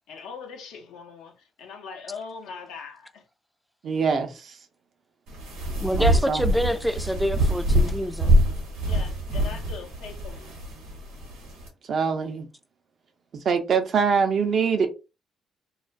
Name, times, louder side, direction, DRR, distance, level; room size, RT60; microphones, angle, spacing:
voice 1, 0.1-3.2 8.8-10.6, left 5 dB, 80° left, 0.6 m, -41 dB
voice 2, 3.8-4.6 6.0-6.5 11.9-12.5 13.3-14.9, right 6 dB, 60° right, 0.6 m, -24 dB
sound 1, 5.3-11.7, equal, 90° right, 0.8 m, -24 dB
voice 3, 5.8-8.4, equal, ahead, 0.4 m, -26 dB
2.3 x 2.2 x 2.4 m
supercardioid pair, 55°, 0 cm